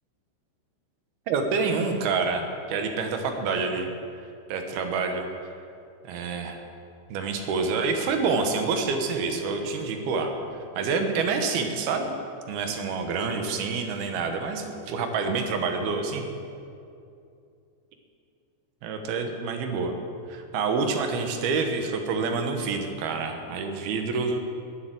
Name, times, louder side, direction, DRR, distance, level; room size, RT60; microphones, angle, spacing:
voice 1, 1.3-3.9 4.5-5.5 6.0-6.6 7.1-10.3 10.8-12.1 12.5-16.3 18.8-20.0 20.3-24.4, right 4 dB, 65° right, 5 dB, 2.9 m, -27 dB
19.0 x 8.9 x 7.8 m, 2.5 s
omnidirectional pair, 5.2 m